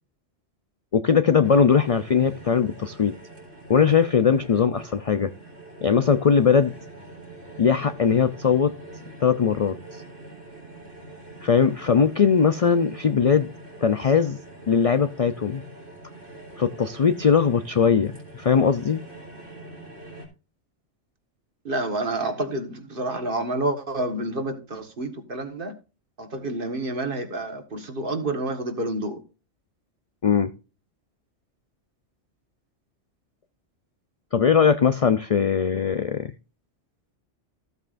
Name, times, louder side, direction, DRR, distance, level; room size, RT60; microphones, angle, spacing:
voice 1, 0.9-3.1 3.7-5.3 5.8-6.7 7.6-8.8 9.2-10.0 11.4-13.5 13.8-14.4 14.7-15.6 16.6-19.0 30.2-30.5 34.3-36.3, left 6 dB, 55° left, 0.4 m, -20 dB
sound 1, 1.4-20.3, right 2 dB, 85° right, 4.1 m, -44 dB
voice 2, 21.6-25.7 26.2-29.2, right 2 dB, 45° right, 1.7 m, -29 dB
14.5 x 8.1 x 2.5 m
omnidirectional pair, 1.3 m